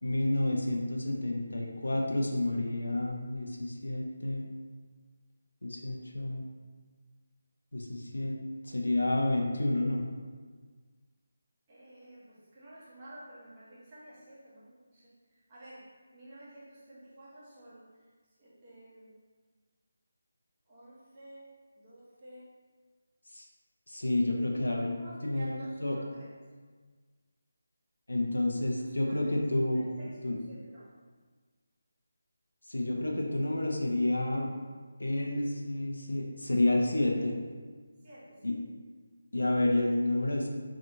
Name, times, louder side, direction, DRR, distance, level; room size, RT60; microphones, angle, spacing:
voice 1, 0.0-4.4 5.6-6.4 7.7-8.4 8.6-10.1 23.3-23.5 23.9-26.0 28.1-29.8 30.2-30.4 32.7-34.5 35.0-37.4 38.4-38.5 39.3-40.5, left 1 dB, 65° left, 0 dB, 0.5 m, -30 dB
voice 2, 11.7-18.1 18.4-19.2 20.7-22.5 24.5-26.3 28.8-29.4 29.7-30.9 38.0-38.6, right 1 dB, 25° right, -9 dB, 0.9 m, -52 dB
3.2 x 2.7 x 2.7 m, 1.5 s
figure-of-eight pair, 155°, 0 cm